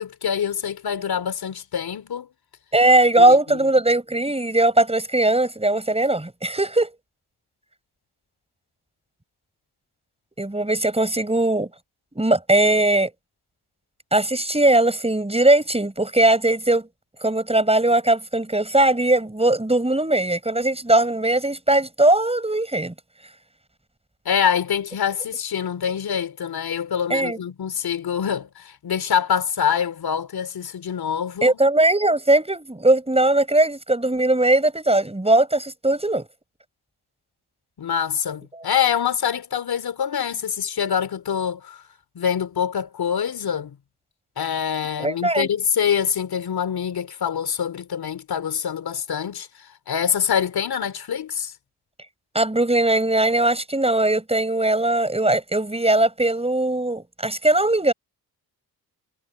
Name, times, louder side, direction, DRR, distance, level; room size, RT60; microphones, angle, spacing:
voice 1, 0.0-2.3 3.2-3.7 24.2-31.5 37.8-41.8 42.1-43.8 44.4-51.5, left 8 dB, 60° left, 2.8 m, -25 dB
voice 2, 2.7-6.9 10.4-11.7 12.1-13.1 14.1-16.9 17.2-22.9 27.1-27.4 31.4-36.2 45.0-45.5 52.3-57.9, right 2 dB, 15° right, 6.7 m, -19 dB
supercardioid pair, 45°, 41 cm